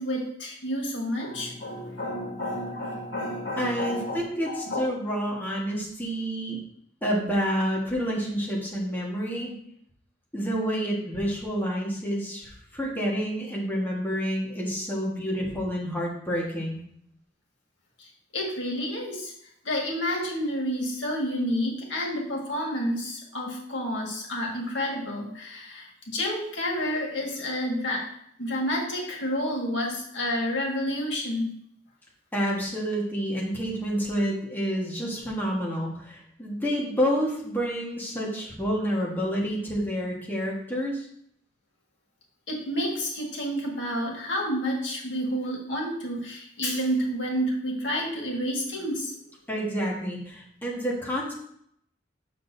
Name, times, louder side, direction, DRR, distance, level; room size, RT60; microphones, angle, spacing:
voice 1, 0.0-4.8 18.0-18.1 18.3-19.3 19.7-28.1 28.4-31.5 42.5-49.1, equal, 90° left, -1 dB, 1.8 m, -30 dB
voice 2, 3.6-6.6 7.0-9.5 10.3-16.8 32.3-41.1 49.5-51.3, equal, 10° left, -4 dB, 1.5 m, -29 dB
7.9 x 6.2 x 2.7 m, 0.68 s
head